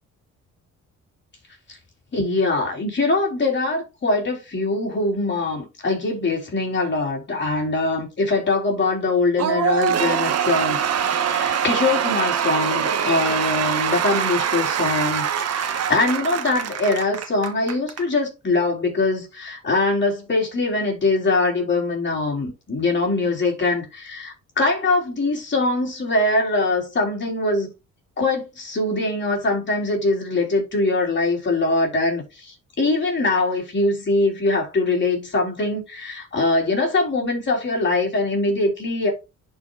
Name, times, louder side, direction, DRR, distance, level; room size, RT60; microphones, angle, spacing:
voice 1, 2.1-27.7 28.2-39.1, left 2 dB, 40° left, 3.7 m, -22 dB
Cheering / Applause / Crowd, 9.4-18.0, right 8 dB, 55° right, 1.1 m, -23 dB
11.0 x 4.9 x 2.4 m
cardioid pair, 90°, 30 cm